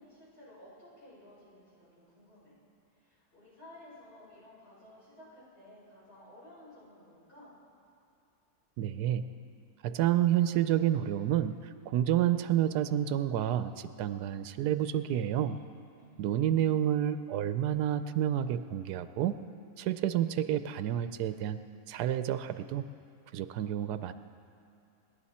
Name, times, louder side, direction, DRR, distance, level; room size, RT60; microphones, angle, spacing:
voice 1, 0.0-2.6 2.9-7.6 15.9-16.6, left 1 dB, 75° left, -8 dB, 5.7 m, -55 dB
voice 2, 8.8-9.3 9.8-15.6 16.2-19.4 19.8-21.6 21.9-22.9 23.3-24.1, right 11 dB, 90° right, 11 dB, 1.2 m, -29 dB
28.5 x 11.0 x 4.3 m, 2.6 s
omnidirectional pair, 1.7 m